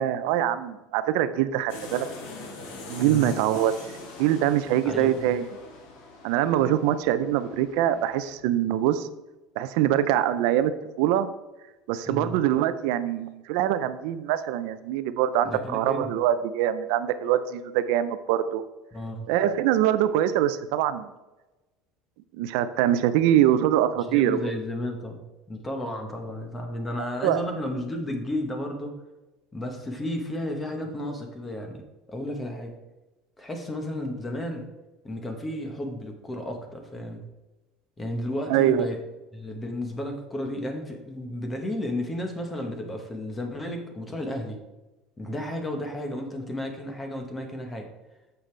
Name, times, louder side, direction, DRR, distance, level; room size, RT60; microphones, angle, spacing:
voice 1, 0.0-2.1 2.9-3.8 4.2-5.5 6.2-9.1 9.6-10.7 11.0-11.3 11.9-18.6 19.3-21.1 22.3-24.5 27.2-27.4 38.5-38.9, right 11 dB, 75° right, 12 dB, 0.6 m, -23 dB
sound 1, 1.7-8.3, left 3 dB, 80° left, 2.0 m, -43 dB
voice 2, 3.0-3.4 4.8-5.3 12.1-12.4 15.4-16.1 18.9-19.3 24.0-25.2 25.5-28.9 29.5-31.8 32.1-32.7 33.4-34.6 35.0-37.3 38.0-39.0 39.3-44.6 45.2-47.9, left 1 dB, 15° left, 4 dB, 1.3 m, -33 dB
8.9 x 6.9 x 3.4 m, 1.1 s
cardioid pair, 150°, 0 cm